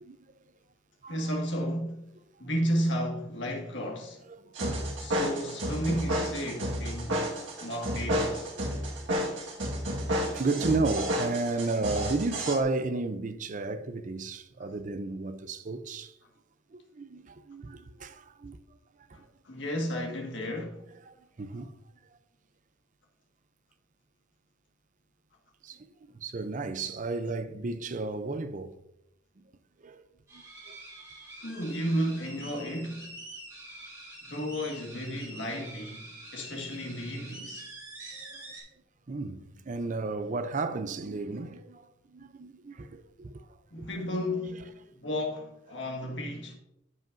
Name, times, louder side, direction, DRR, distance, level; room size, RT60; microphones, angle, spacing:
voice 1, 1.1-2.0 2.4-4.2 5.0-7.3 7.6-8.5 19.1-20.8 31.4-33.1 34.3-37.7 43.7-44.7 45.0-46.6, equal, 70° left, 1.8 m, -33 dB
sound 1, 4.6-12.6, equal, 85° right, 1.7 m, -31 dB
voice 2, 8.6-9.1 10.0-16.1 16.7-18.6 19.2-19.3 21.1-21.7 25.6-28.8 29.4-29.5 29.8-30.0 30.3-30.8 38.2-38.4 39.1-43.5 43.8-43.9, right 3 dB, 40° right, 0.5 m, -33 dB
sound 2, 30.3-38.6, right 1 dB, 15° right, 2.8 m, -46 dB
14.0 x 5.3 x 2.6 m
head